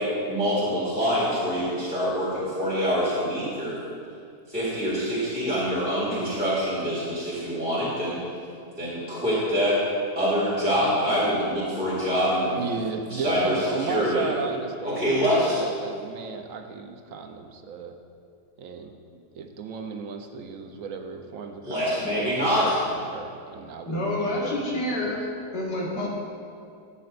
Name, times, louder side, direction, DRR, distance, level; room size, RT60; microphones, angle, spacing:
voice 1, 0.0-3.8 4.5-8.2 8.8-9.8 10.2-12.5 13.1-14.3 14.8-15.6 21.6-22.8, equal, 5° right, -10 dB, 1.9 m, -25 dB
voice 2, 12.5-17.9 18.6-21.9 22.2-24.6 25.0-25.2, right 5 dB, 65° right, 5 dB, 0.9 m, -35 dB
voice 3, 23.9-25.2 25.5-26.1, left 1 dB, 85° left, -5 dB, 2.5 m, -28 dB
13.5 x 8.5 x 2.5 m, 2.4 s
omnidirectional pair, 1.8 m